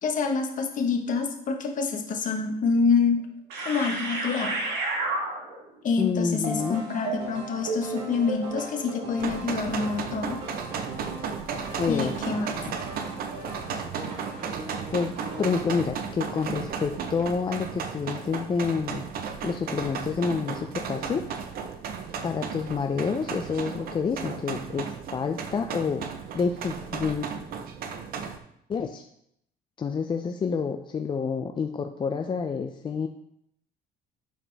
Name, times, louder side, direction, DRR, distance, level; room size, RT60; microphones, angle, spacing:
voice 1, 0.0-3.2 3.6-4.6 5.8-10.4 11.9-12.6, left 5 dB, 50° left, 3 dB, 1.2 m, -26 dB
sound 1, 2.7-2.8 3.5-5.7 6.4-15.8, right 2 dB, 90° right, 1.5 m, -35 dB
voice 2, 6.0-6.8 11.8-12.1 12.7-12.8 14.9-19.1 19.4-21.2 22.2-26.0 26.3-27.4 28.7-29.0 29.8-33.1, left 5 dB, 30° left, 5 dB, 0.4 m, -28 dB
sound 2, 9.2-28.4, right 6 dB, 60° right, 0.7 m, -35 dB
8.7 x 4.3 x 3.4 m, 0.75 s
cardioid pair, 110°, 17 cm